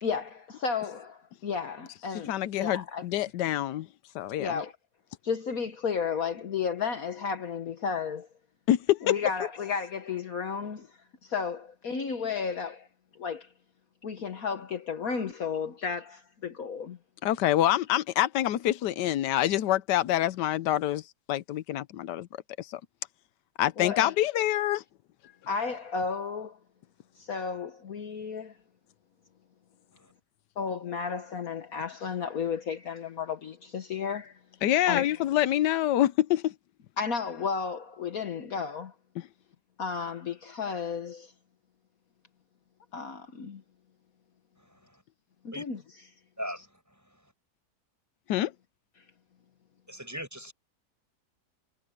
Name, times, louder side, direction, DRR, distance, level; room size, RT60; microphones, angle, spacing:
voice 1, 0.0-3.1 4.4-4.7 5.2-8.3 9.0-12.9 13.1-13.5 14.0-17.0 23.8-24.1 25.2-26.6 27.2-28.6 30.6-34.4 34.9-35.1 37.0-39.0 39.8-41.3 42.9-43.6 45.4-45.8 49.0-49.1, left 6 dB, 60° left, 1.6 m, -33 dB
voice 2, 2.3-3.9 4.1-4.6 8.7-9.0 17.2-22.3 22.6-22.8 23.6-24.8 34.6-36.5 48.3-48.5, left 13 dB, 90° left, 1.3 m, -26 dB
voice 3, 44.7-45.0 45.5-45.6 46.4-46.6 49.9-50.5, equal, 10° right, 8.1 m, -39 dB
omnidirectional pair, 1.8 m